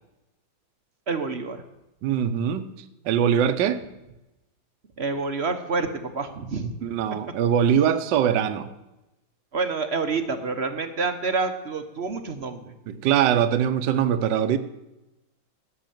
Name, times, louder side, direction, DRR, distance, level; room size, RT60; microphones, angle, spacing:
voice 1, 1.1-1.6 5.0-6.7 9.5-12.7, right 4 dB, 45° right, 7 dB, 0.9 m, -28 dB
voice 2, 2.0-2.7 3.0-3.8 6.8-8.7 12.9-14.6, right 9 dB, 65° right, 10 dB, 1.4 m, -22 dB
16.0 x 7.1 x 9.1 m, 0.97 s
omnidirectional pair, 2.3 m